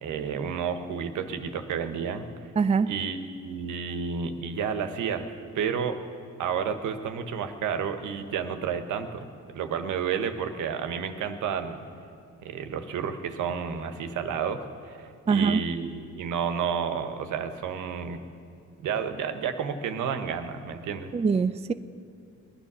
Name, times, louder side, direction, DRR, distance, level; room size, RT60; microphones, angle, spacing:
voice 1, 0.0-2.2 2.9-6.0 6.4-9.3 9.5-11.8 12.4-18.2 18.8-21.1, right 7 dB, 80° right, 8 dB, 1.2 m, -31 dB
voice 2, 2.6-2.9 15.3-15.6 21.1-21.7, right 5 dB, 20° right, 12 dB, 0.5 m, -23 dB
20.5 x 10.0 x 6.2 m, 2.7 s
cardioid pair, 90°, 30 cm